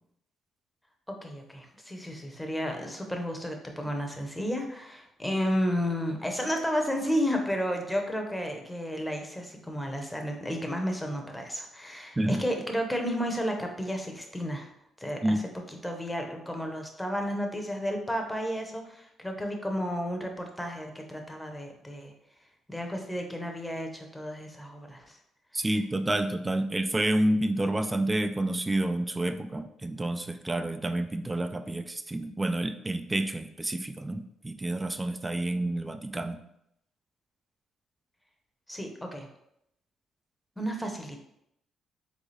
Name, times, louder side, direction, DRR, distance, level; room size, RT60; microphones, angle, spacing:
voice 1, 1.1-14.7 15.0-15.4 15.7-22.1 22.7-25.2 38.7-39.3 40.6-41.2, equal, 5° left, 3 dB, 0.8 m, -32 dB
voice 2, 12.2-12.5 15.2-15.4 25.5-36.4, right 1 dB, 15° right, 9 dB, 0.4 m, -29 dB
4.1 x 3.5 x 3.2 m, 0.78 s
cardioid pair, 90°, 0 cm